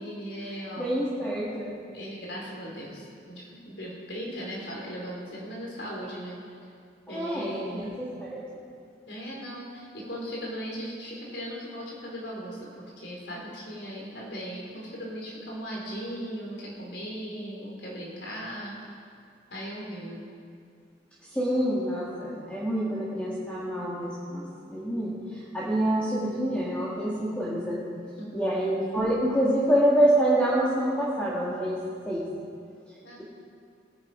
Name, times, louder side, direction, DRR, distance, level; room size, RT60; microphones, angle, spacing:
voice 1, 0.0-0.9 1.9-6.4 7.1-7.9 9.1-18.8 19.5-20.2 28.2-28.6 33.0-33.2, equal, 70° left, -3 dB, 4.0 m, -38 dB
voice 2, 0.8-1.7 7.1-8.6 21.3-25.1 25.5-27.8 28.3-31.8 32.1-32.2, right 1 dB, 5° left, -8 dB, 1.8 m, -26 dB
17.5 x 10.0 x 5.0 m, 2.3 s
head